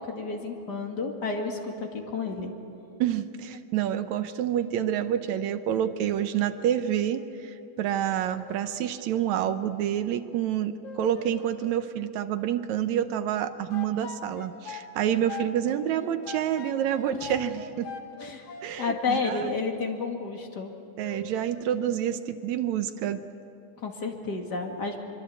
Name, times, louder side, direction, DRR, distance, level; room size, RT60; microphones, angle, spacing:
voice 1, 0.0-2.5 17.2-17.3 18.2-18.5 18.8-20.7 23.8-25.0, left 4 dB, 35° left, 2 dB, 2.5 m, -31 dB
voice 2, 3.0-7.5 7.8-17.9 18.6-19.5 21.0-23.2, right 10 dB, 75° right, 10 dB, 2.1 m, -28 dB
sound 1, 8.3-8.8 10.8-11.3 13.7-19.3 21.0-21.5, left 5 dB, 55° left, 2.6 m, -41 dB
24.5 x 23.5 x 8.5 m, 2.7 s
omnidirectional pair, 3.3 m